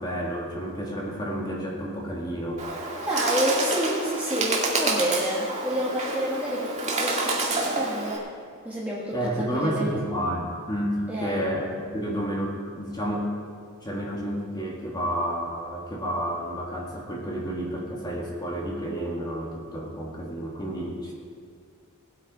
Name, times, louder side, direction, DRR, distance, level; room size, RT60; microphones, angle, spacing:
voice 1, 0.0-2.6 9.1-13.3 13.8-21.1, equal, 20° left, -3 dB, 2.0 m, -30 dB
Bird, 2.6-8.2, right 2 dB, 30° right, 2.0 m, -28 dB
voice 2, 3.1-8.2 8.6-9.9 11.1-11.4, equal, 10° right, -8 dB, 1.6 m, -29 dB
19.0 x 8.3 x 4.9 m, 2.2 s
head